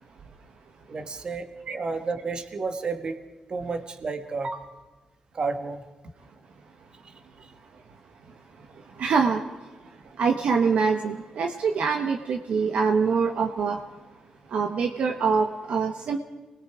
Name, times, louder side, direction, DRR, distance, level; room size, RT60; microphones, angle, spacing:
voice 1, 0.9-3.2 3.5-4.7 5.3-5.8 7.0-7.1 7.4-7.5, right 4 dB, 40° right, 7 dB, 1.7 m, -31 dB
voice 2, 9.0-9.4 10.2-13.8 14.5-16.2, right 5 dB, 65° right, 3 dB, 1.2 m, -24 dB
27.5 x 21.0 x 4.9 m, 1.3 s
cardioid pair, 115°, 2 cm